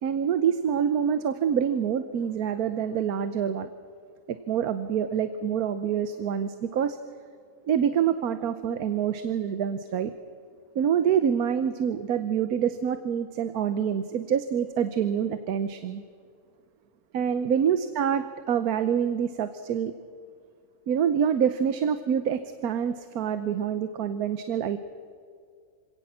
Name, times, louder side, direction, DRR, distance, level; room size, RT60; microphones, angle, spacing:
voice 1, 0.0-3.7 4.3-7.0 7.7-10.1 10.7-16.0 17.1-19.9 20.9-24.8, right 8 dB, 80° right, 11 dB, 1.3 m, -26 dB
26.0 x 17.5 x 7.4 m, 2.2 s
omnidirectional pair, 1.6 m